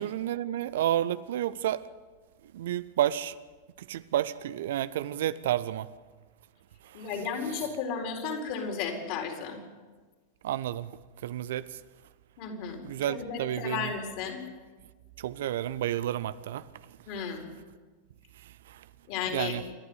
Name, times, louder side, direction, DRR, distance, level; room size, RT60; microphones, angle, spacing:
voice 1, 0.0-1.8 2.5-3.3 3.8-5.9 6.9-7.6 10.4-10.9 11.2-11.7 12.8-13.9 15.2-16.6 18.7-18.8 19.2-19.6, right 12 dB, 55° right, 0.6 m, -31 dB
voice 2, 6.9-9.6 12.4-12.8 13.1-14.4 17.1-17.4 19.1-19.6, left 6 dB, 45° left, 4.5 m, -34 dB
28.5 x 12.0 x 8.2 m
figure-of-eight pair, 90°, 0 cm